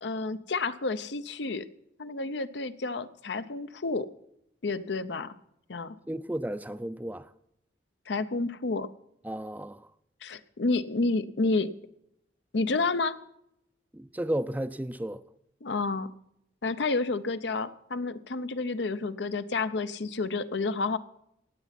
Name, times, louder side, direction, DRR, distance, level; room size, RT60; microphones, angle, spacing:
voice 1, 0.0-1.7 2.0-4.1 4.6-5.4 5.7-5.9 8.1-8.9 10.2-11.7 12.5-13.2 15.6-16.1 16.6-21.0, left 3 dB, 70° left, 0.7 m, -30 dB
voice 2, 6.1-7.3 9.2-9.8 13.9-15.2, right 1 dB, 10° right, 0.4 m, -33 dB
17.5 x 8.2 x 5.9 m
head